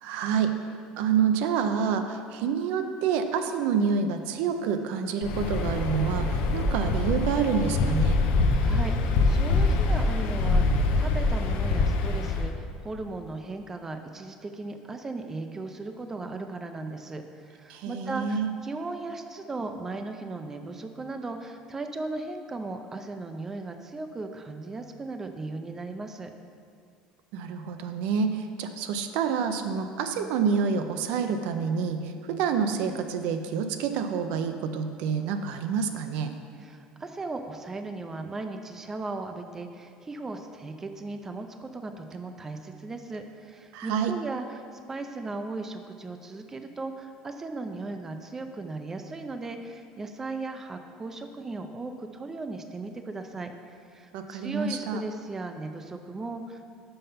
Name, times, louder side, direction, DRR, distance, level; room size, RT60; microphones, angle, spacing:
voice 1, 0.0-0.6 1.0-8.2 17.7-18.5 27.3-36.3 43.7-44.2 54.1-55.0, right 6 dB, 75° right, 7 dB, 0.5 m, -28 dB
Waves surf, 5.2-12.5, left 3 dB, 70° left, 0.6 m, -24 dB
voice 2, 8.4-26.3 36.6-56.7, right 3 dB, 15° right, 6 dB, 0.4 m, -37 dB
5.5 x 5.4 x 5.6 m, 2.3 s
cardioid pair, 135°, 2 cm